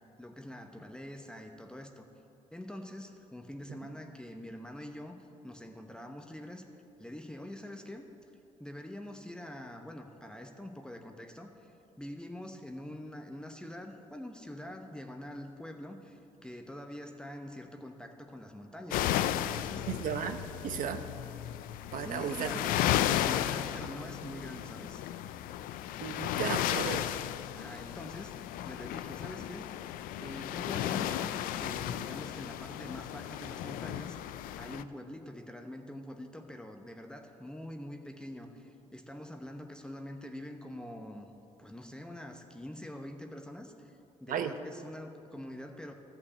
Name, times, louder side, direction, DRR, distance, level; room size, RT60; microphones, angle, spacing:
voice 1, 0.2-2.1 2.5-6.6 7.0-8.1 8.6-19.9 22.0-22.8 23.2-25.0 27.6-29.7 30.2-41.3 41.6-45.9, left 1 dB, 5° left, 4 dB, 1.0 m, -45 dB
sound 1, 18.9-34.8, left 12 dB, 80° left, 0.4 m, -34 dB
voice 2, 19.9-21.0 21.9-22.5 26.0-27.0 44.3-44.5, right 8 dB, 70° right, 8 dB, 0.9 m, -34 dB
13.0 x 5.9 x 8.1 m, 2.8 s
supercardioid pair, 65°, 14 cm